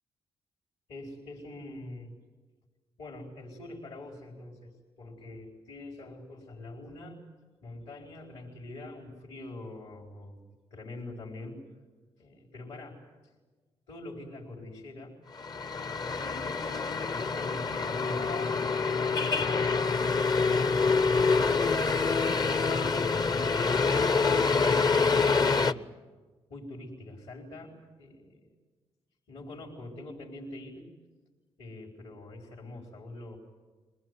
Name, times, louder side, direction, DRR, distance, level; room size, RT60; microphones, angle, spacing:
voice 1, 0.9-2.1 3.0-7.2 7.6-10.4 10.7-11.6 12.2-13.0 13.9-15.2 16.0-19.2 20.2-25.8 26.5-28.6 29.3-30.9 31.6-33.4, left 2 dB, 75° left, -3 dB, 4.5 m, -44 dB
sound 1, 15.4-25.7, left 4 dB, 40° left, 0.8 m, -26 dB
23.5 x 20.0 x 9.7 m, 1.3 s
cardioid pair, 70°, 11 cm